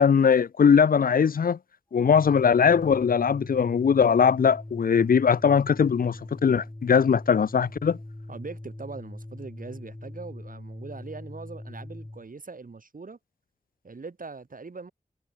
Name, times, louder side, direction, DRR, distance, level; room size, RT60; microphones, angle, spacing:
voice 1, 0.0-1.6 1.9-8.0, left 6 dB, 80° left, 0.5 m, -20 dB
Organ, 2.0-12.3, left 1 dB, 20° left, 7.5 m, -42 dB
voice 2, 8.3-13.2 13.8-14.9, right 4 dB, 70° right, 5.3 m, -41 dB
wide cardioid pair, 85°, 15 cm